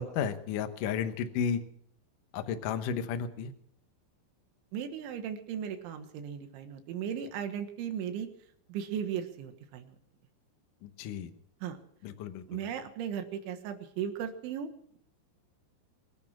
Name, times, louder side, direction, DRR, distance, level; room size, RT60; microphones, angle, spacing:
voice 1, 0.0-1.6 2.3-3.5 10.8-11.3 12.0-12.7, left 7 dB, 75° left, 8 dB, 1.9 m, -33 dB
voice 2, 4.7-8.3 8.7-10.0 11.6-11.8 12.5-14.7, right 8 dB, 85° right, 7 dB, 3.8 m, -36 dB
23.5 x 10.5 x 6.1 m, 0.67 s
omnidirectional pair, 5.4 m